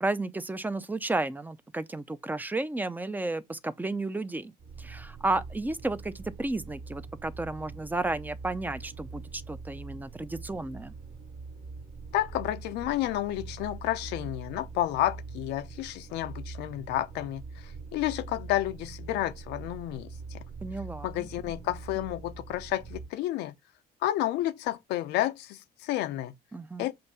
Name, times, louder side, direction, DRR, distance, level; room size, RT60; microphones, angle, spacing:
voice 1, 0.0-4.5 4.8-11.0 20.6-21.3 26.5-26.9, right 2 dB, 10° right, 0.6 m, -32 dB
sound 1, 4.6-23.1, right 4 dB, 65° right, 1.9 m, -43 dB
voice 2, 12.1-20.4 21.0-23.5 24.0-26.3 26.8-26.9, left 14 dB, 90° left, 0.7 m, -31 dB
7.7 x 2.7 x 5.5 m
cardioid pair, 110°, 17 cm